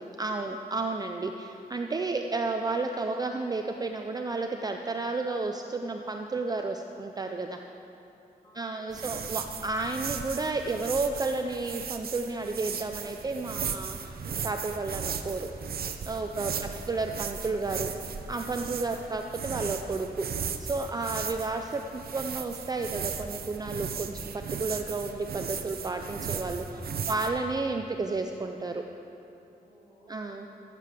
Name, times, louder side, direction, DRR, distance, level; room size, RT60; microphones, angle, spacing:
voice 1, 0.0-7.6 8.5-15.5 16.1-16.5 16.9-17.9 18.3-20.3 20.6-26.7 27.1-28.8 30.1-30.5, right 3 dB, 25° right, 4 dB, 0.4 m, -32 dB
voice 2, 8.4-9.6 26.5-27.4 29.6-30.4, equal, 20° left, -5 dB, 2.9 m, -58 dB
sound 1, 8.9-27.3, right 6 dB, 70° right, 0.7 m, -36 dB
14.5 x 7.5 x 6.7 m, 2.8 s
wide cardioid pair, 175°, 16 cm